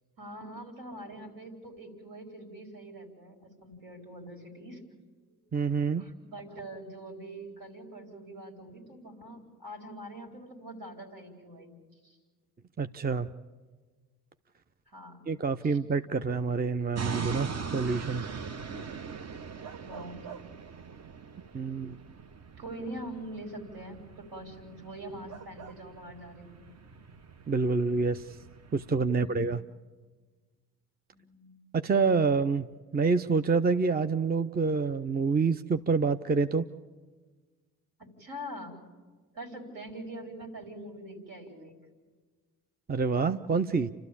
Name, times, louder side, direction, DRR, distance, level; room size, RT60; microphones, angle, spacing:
voice 1, 0.2-4.8 6.0-11.7 12.0-12.2 14.9-15.3 15.6-15.8 19.8-20.2 22.6-24.0 24.3-26.7 29.0-29.5 31.1-31.6 38.2-38.8 39.3-41.8, right 1 dB, 70° right, 4 dB, 4.5 m, -44 dB
voice 2, 5.5-6.0 12.8-13.3 15.3-18.3 21.5-22.0 27.5-28.3 28.7-29.6 31.7-32.7 32.9-36.7 42.9-43.9, right 4 dB, 20° right, 11 dB, 0.7 m, -27 dB
sound 1, 16.9-28.9, right 5 dB, 40° right, 1.0 m, -42 dB
29.0 x 13.0 x 8.5 m, 1.4 s
hypercardioid pair, 40°, 41 cm